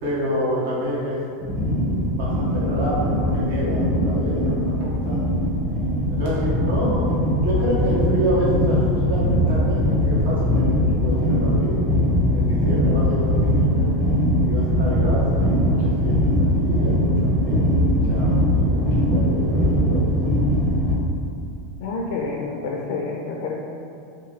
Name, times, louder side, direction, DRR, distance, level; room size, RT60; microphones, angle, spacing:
voice 1, 0.0-5.2 6.1-11.8 12.3-13.9 14.4-20.5, equal, 70° right, -7 dB, 0.9 m, -28 dB
sound 1, 1.4-20.9, equal, 20° right, 0.9 m, -21 dB
voice 2, 21.8-23.6, left 3 dB, 65° left, -1 dB, 0.3 m, -28 dB
2.7 x 2.7 x 3.5 m, 2.5 s
hypercardioid pair, 90°, 0 cm